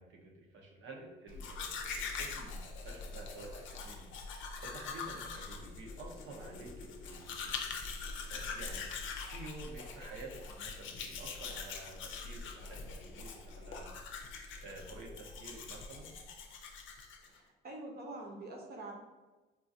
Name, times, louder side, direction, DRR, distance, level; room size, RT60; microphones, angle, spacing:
voice 1, 0.0-7.9 8.3-8.9 9.3-13.9 14.6-16.1, right 2 dB, 80° right, 0 dB, 0.8 m, -50 dB
Domestic sounds home sounds, 1.3-17.4, left 4 dB, 75° left, 0.5 m, -43 dB
voice 2, 17.2-18.9, right 2 dB, 55° right, 1 dB, 0.8 m, -46 dB
3.7 x 2.4 x 2.7 m, 1.2 s
cardioid pair, 90°, 20 cm